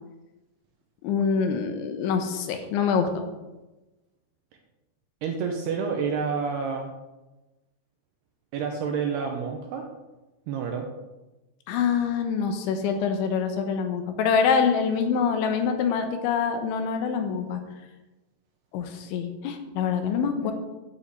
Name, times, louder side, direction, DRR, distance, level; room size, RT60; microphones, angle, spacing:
voice 1, 1.0-3.2 11.7-17.6 18.7-20.5, left 6 dB, 80° left, 6 dB, 3.3 m, -25 dB
voice 2, 5.2-6.9 8.5-9.9 10.5-10.9 20.4-20.5, right 6 dB, 75° right, 3 dB, 2.5 m, -29 dB
10.5 x 5.6 x 8.3 m, 1.1 s
omnidirectional pair, 5.6 m